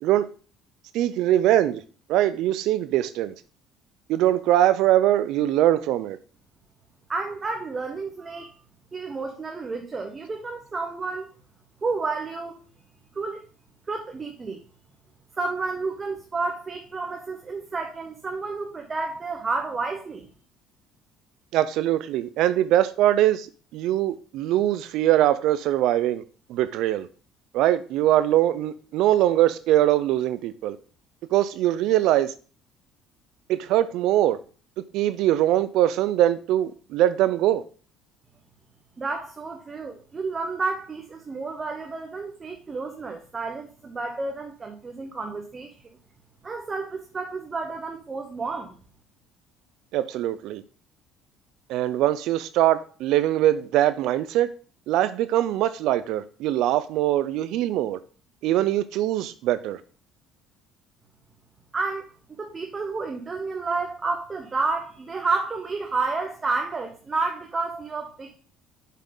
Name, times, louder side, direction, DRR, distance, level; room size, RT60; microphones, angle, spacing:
voice 1, 0.9-1.8 2.1-3.3 4.1-6.2 21.5-23.5 23.7-26.2 26.5-27.1 27.5-30.8 31.3-32.3 33.5-34.4 34.9-37.6 49.9-50.6 51.7-54.5 54.9-58.0 58.4-59.8, right 13 dB, 70° right, 0.4 m, -22 dB
voice 2, 7.1-8.5 8.9-11.3 11.8-12.6 13.1-13.4 13.9-14.6 15.4-20.3 39.0-45.7 46.4-48.7 61.7-68.4, right 3 dB, 25° right, 0.8 m, -30 dB
7.1 x 5.6 x 3.8 m
cardioid pair, 135°, 0 cm